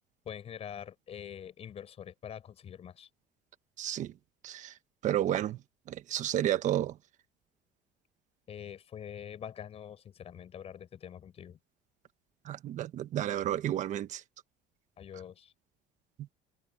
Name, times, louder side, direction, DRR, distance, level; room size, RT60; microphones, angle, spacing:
voice 1, 0.2-3.1 8.5-11.6 15.0-15.5, left 9 dB, 35° left, 6.4 m, -45 dB
voice 2, 3.8-4.1 4.4-4.7 5.0-5.6 5.9-6.9 12.5-14.2, right 12 dB, 45° right, 1.3 m, -31 dB
cardioid pair, 155°, 18 cm